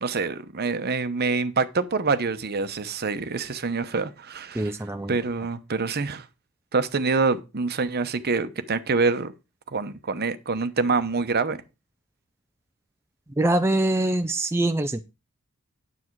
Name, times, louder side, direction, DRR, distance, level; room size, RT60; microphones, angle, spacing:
voice 1, 0.0-4.7 5.1-6.3 6.7-9.3 9.7-11.6, right 4 dB, 45° right, 0.9 m, -26 dB
voice 2, 4.5-5.1 13.4-15.0, right 1 dB, 10° right, 0.5 m, -24 dB
9.8 x 7.6 x 4.6 m
head